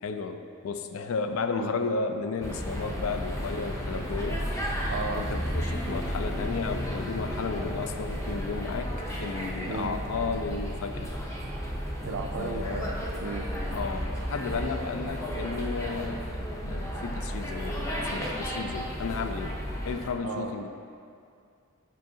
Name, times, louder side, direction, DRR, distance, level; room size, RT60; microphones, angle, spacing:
voice 1, 0.0-4.4 5.1-8.9 9.2-11.1 12.4-12.9 13.7-19.5 19.8-20.7, left 4 dB, 80° left, 7 dB, 0.4 m, -33 dB
sound 1, 2.4-20.1, equal, 15° left, 0.6 m, -33 dB
voice 2, 4.9-5.3 9.7-10.0 12.0-13.5 20.2-20.5, right 4 dB, 75° right, 1 dB, 0.4 m, -34 dB
7.6 x 5.7 x 2.7 m, 2.4 s
head